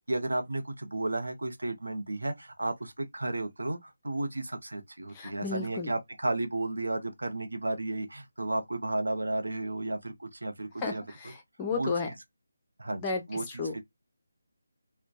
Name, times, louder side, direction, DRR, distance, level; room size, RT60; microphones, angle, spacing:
voice 1, 0.1-11.0 11.7-12.1 12.8-13.0 13.3-13.8, right 2 dB, 85° right, 0.7 m, -33 dB
voice 2, 5.1-5.9 10.8-12.1 13.0-13.8, left 4 dB, 20° left, 0.6 m, -33 dB
2.6 x 2.2 x 2.2 m
figure-of-eight pair, 160°, 0 cm